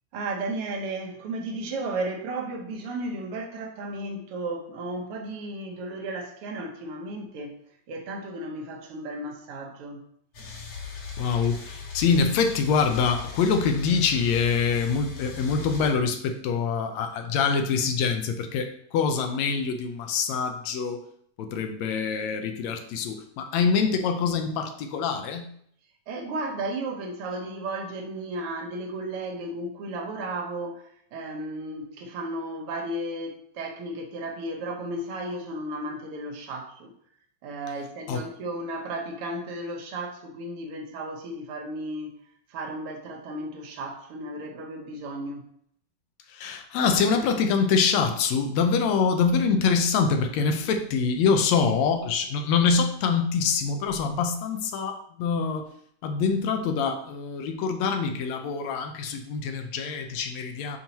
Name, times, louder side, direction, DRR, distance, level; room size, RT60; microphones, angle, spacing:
voice 1, 0.1-7.6 7.9-10.1 26.1-36.9 37.4-42.1 42.5-45.4, right 2 dB, 60° right, 3 dB, 1.6 m, -34 dB
sound 1, 10.3-15.9, left 5 dB, 55° left, 2.5 m, -38 dB
voice 2, 11.2-21.0 21.4-25.5 38.1-38.3 46.3-55.7 56.0-60.8, left 5 dB, 75° left, 6 dB, 1.8 m, -25 dB
11.0 x 4.4 x 2.9 m, 0.67 s
omnidirectional pair, 3.6 m